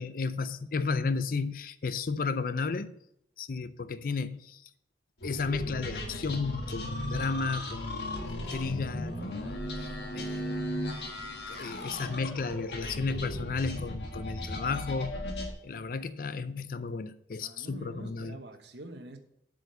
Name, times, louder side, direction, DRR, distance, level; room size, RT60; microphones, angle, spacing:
voice 1, 0.0-3.0 3.4-4.7 5.2-9.5 9.8-10.6 11.5-15.3 15.6-18.4, left 4 dB, 50° left, 0.4 m, -33 dB
sound 1, 5.2-15.5, left 1 dB, 70° left, 1.6 m, -36 dB
voice 2, 17.4-19.2, right 1 dB, 75° right, 1.0 m, -45 dB
7.7 x 5.1 x 6.7 m
head